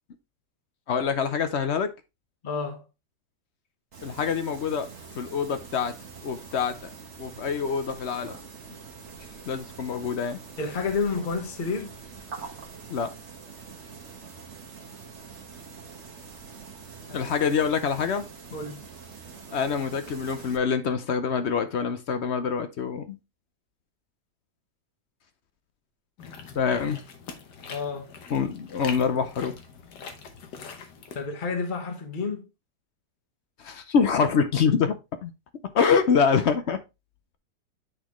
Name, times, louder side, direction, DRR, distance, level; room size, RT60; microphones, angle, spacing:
voice 1, 0.9-1.9 4.0-4.9 5.2-5.9 6.2-6.9 7.2-8.4 9.5-10.4 12.9-13.1 17.1-18.2 19.5-23.2 26.6-27.0 28.3-29.5 33.6-35.3 35.7-36.8, left 6 dB, 60° left, 0.7 m, -25 dB
voice 2, 2.4-2.8 10.6-12.0 17.1-17.3 18.5-18.8 27.7-28.1 31.1-32.4, left 4 dB, 30° left, 1.3 m, -30 dB
sound 1, 3.9-20.6, right 5 dB, 45° right, 1.4 m, -44 dB
sound 2, 26.2-31.2, left 5 dB, 80° left, 1.6 m, -43 dB
9.1 x 4.1 x 3.1 m
omnidirectional pair, 1.8 m